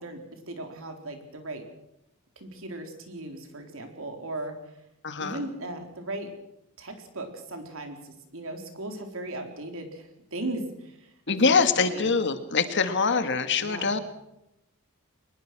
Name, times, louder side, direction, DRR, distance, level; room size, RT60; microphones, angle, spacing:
voice 1, 0.0-1.6 2.4-4.6 5.2-6.3 6.8-12.1 13.6-13.9, right 2 dB, 65° right, 5 dB, 4.2 m, -37 dB
voice 2, 5.0-5.4 11.3-14.0, left 4 dB, 55° left, 9 dB, 2.0 m, -24 dB
24.0 x 20.5 x 6.2 m, 0.87 s
head